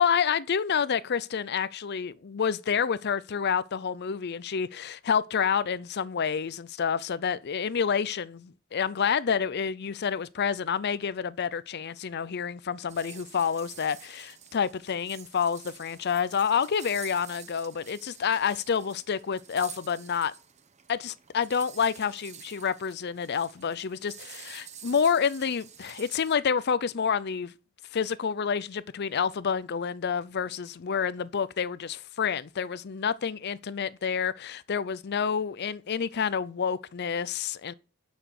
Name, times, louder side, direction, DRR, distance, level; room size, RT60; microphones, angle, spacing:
voice 1, 0.0-20.3 20.9-27.5 27.9-37.7, left 7 dB, 50° left, 0.5 m, -28 dB
sound 1, 12.9-26.4, right 9 dB, 35° right, 0.9 m, -49 dB
11.0 x 6.1 x 6.5 m
head